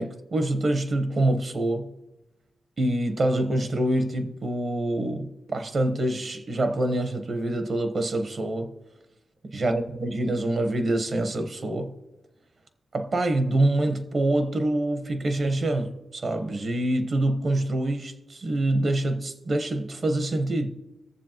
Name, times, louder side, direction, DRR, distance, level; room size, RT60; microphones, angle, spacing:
voice 1, 0.0-1.9 2.8-8.7 9.4-12.0 12.9-20.7, right 1 dB, 55° right, 1.2 m, -26 dB
21.0 x 7.1 x 3.0 m
cardioid pair, 55°, 0 cm